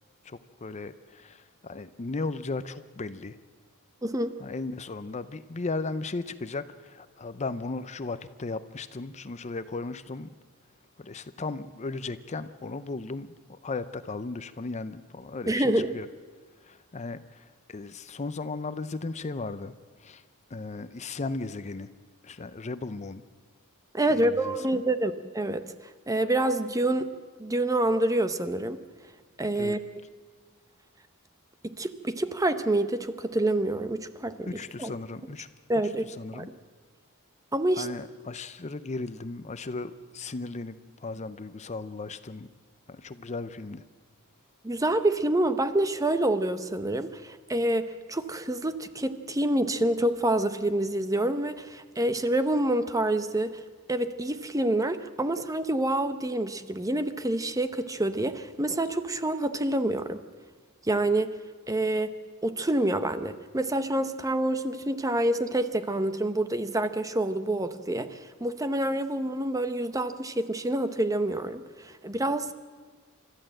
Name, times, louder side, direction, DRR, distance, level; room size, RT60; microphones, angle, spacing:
voice 1, 0.2-3.4 4.4-10.3 11.0-16.1 16.6-19.7 20.0-20.2 20.5-21.9 22.2-23.2 24.1-24.8 29.6-29.8 34.5-35.5 36.0-36.5 37.8-42.5 42.9-43.8, left 3 dB, 30° left, 13 dB, 0.6 m, -36 dB
voice 2, 4.0-4.3 15.5-15.9 23.9-25.6 26.1-27.1 27.4-28.8 29.4-29.8 31.6-34.5 34.8-34.9 35.7-36.0 36.3-36.5 37.5-37.9 44.6-53.5 53.9-60.2 60.8-61.3 61.7-62.1 62.4-72.5, right 1 dB, 15° right, 10 dB, 0.8 m, -27 dB
29.5 x 13.5 x 7.7 m, 1.5 s
head